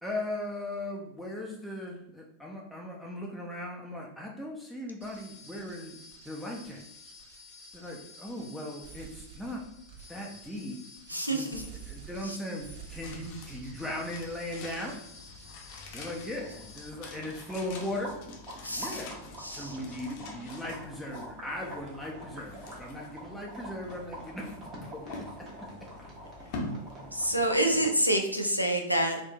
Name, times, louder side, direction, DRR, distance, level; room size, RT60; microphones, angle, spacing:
voice 1, 0.0-6.0 6.2-6.8 7.7-9.6 10.1-10.8 11.3-11.6 11.9-14.9 15.9-18.1 18.8-19.2 19.5-25.2 27.2-27.3, left 1 dB, ahead, -2 dB, 0.5 m, -38 dB
sound 1, 5.0-16.9, right 1 dB, 55° right, 1.1 m, -49 dB
voice 2, 11.1-11.7 12.2-12.4 18.6-19.0 19.4-19.8 27.1-29.2, right 1 dB, 90° right, 3 dB, 0.4 m, -27 dB
sound 2, 13.0-28.2 28.5-28.6, left 3 dB, 45° left, 0.6 m, -46 dB
sound 3, 16.4-28.1, right 1 dB, 30° right, 1.0 m, -46 dB
3.6 x 2.4 x 2.2 m, 0.81 s
figure-of-eight pair, 90°, 0 cm